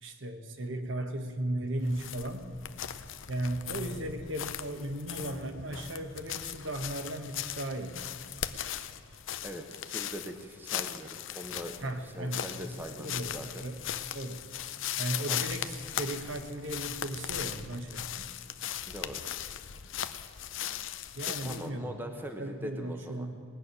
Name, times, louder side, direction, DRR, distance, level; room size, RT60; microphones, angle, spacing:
voice 1, 0.0-2.5 3.3-8.0 11.8-12.4 12.8-13.4 13.6-13.8 14.1-14.4 15.0-18.3 21.1-23.4, right 1 dB, 60° right, 6 dB, 1.2 m, -36 dB
sound 1, 1.8-21.7, left 10 dB, 65° left, 0.6 m, -38 dB
voice 2, 9.4-11.8 12.1-13.6 15.3-15.4 18.9-19.2 21.3-23.3, equal, 10° right, 4 dB, 0.9 m, -42 dB
19.0 x 6.5 x 9.8 m, 2.2 s
head